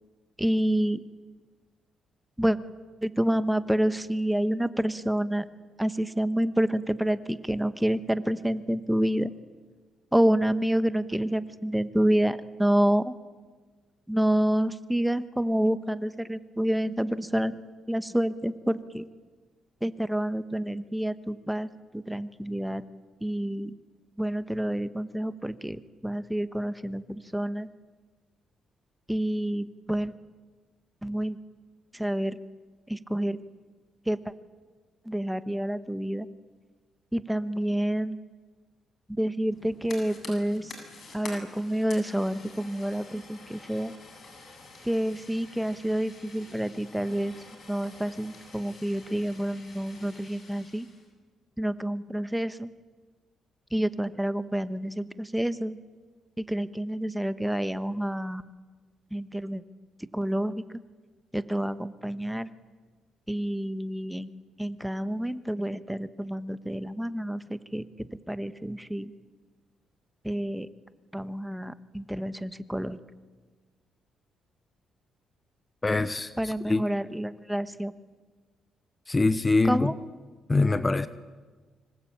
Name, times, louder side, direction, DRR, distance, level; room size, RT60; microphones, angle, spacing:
voice 1, 0.4-1.0 2.4-2.6 3.0-5.4 5.8-9.3 10.1-13.1 14.1-17.5 17.9-19.0 19.8-22.8 23.2-23.7 24.2-27.7 29.1-30.1 31.0-31.4 31.9-32.4 32.9-33.4 34.1-34.2 35.1-36.3 37.1-38.2 39.2-40.7 41.1-43.9 44.8-47.4 47.7-50.9 51.6-52.7 53.7-55.8 56.4-58.4 59.1-59.6 60.1-60.6 61.3-62.5 63.3-64.3 64.6-69.1 70.2-70.7 71.1-73.0 75.9-76.1 76.4-77.9 79.6-79.9, right 1 dB, 5° right, 13 dB, 1.3 m, -28 dB
Fire, 39.5-51.1, left 3 dB, 50° left, 8.0 m, -48 dB
voice 2, 75.8-76.9 79.1-79.9 80.5-81.1, left 3 dB, 20° left, 14 dB, 1.0 m, -24 dB
25.5 x 25.5 x 8.8 m, 1.4 s
cardioid pair, 90°, 0 cm